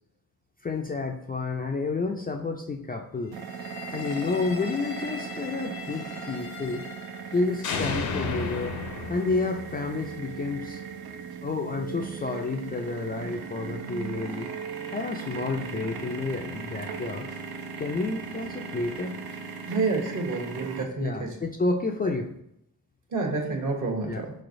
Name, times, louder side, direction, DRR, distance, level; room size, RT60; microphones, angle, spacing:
voice 1, 0.6-3.4 3.9-6.9 7.3-8.8 9.1-10.8 11.4-14.5 14.9-17.3 17.8-19.1 21.0-22.3 24.1-24.2, left 3 dB, 25° left, 2 dB, 0.3 m, -30 dB
sound 1, 3.3-20.8, right 6 dB, 70° right, 0.5 m, -38 dB
sound 2, 3.5-7.3 7.6-10.7, left 4 dB, 70° left, 0.6 m, -36 dB
voice 2, 19.7-21.3 23.1-24.3, right 3 dB, 50° right, 1 dB, 1.1 m, -29 dB
4.1 x 3.1 x 2.6 m, 0.76 s
cardioid pair, 55°, 38 cm